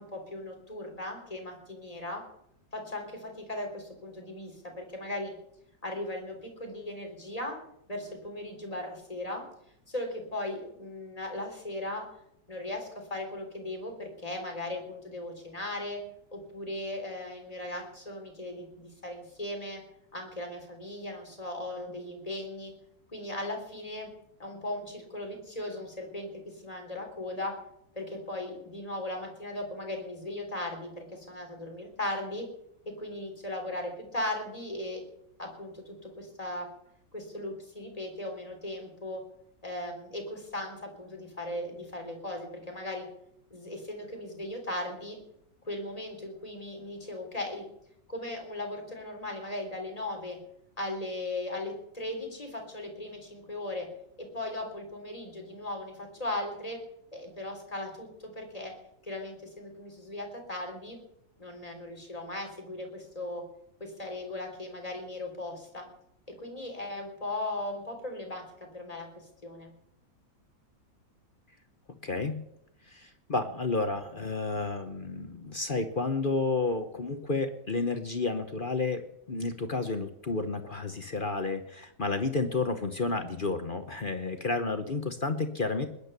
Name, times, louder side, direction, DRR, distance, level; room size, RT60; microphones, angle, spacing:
voice 1, 0.0-2.2 2.7-5.3 5.8-7.6 7.9-9.4 9.9-12.1 12.5-16.0 16.3-19.8 20.1-22.7 23.1-24.1 24.4-27.6 27.9-32.5 33.0-35.0 35.4-36.7 37.1-39.2 39.6-43.0 43.5-45.2 45.7-47.6 48.1-50.4 50.8-53.9 54.3-56.8 57.1-58.1 58.4-58.7 59.0-61.0 61.4-63.4 63.8-65.9 66.4-69.1 69.4-69.7, left 1 dB, 20° left, 2 dB, 3.6 m, -37 dB
voice 2, 72.0-72.5 72.9-85.9, left 3 dB, 40° left, 8 dB, 0.8 m, -31 dB
20.0 x 10.0 x 6.8 m, 0.76 s
omnidirectional pair, 2.0 m